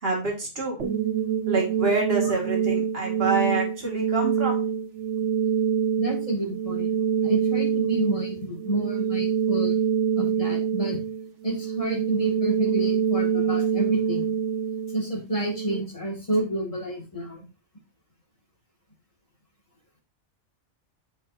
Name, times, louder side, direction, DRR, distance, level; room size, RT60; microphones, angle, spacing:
voice 1, 0.0-0.8 1.5-4.6, right 3 dB, 55° right, 0 dB, 2.0 m, -27 dB
sound 1, 0.8-15.8, right 7 dB, 75° right, 1.3 m, -25 dB
voice 2, 6.0-6.9 7.2-9.8 10.2-11.0 11.4-14.3 14.9-17.4, right 1 dB, 30° left, -2 dB, 1.9 m, -29 dB
8.7 x 4.6 x 2.5 m, 0.30 s
omnidirectional pair, 1.2 m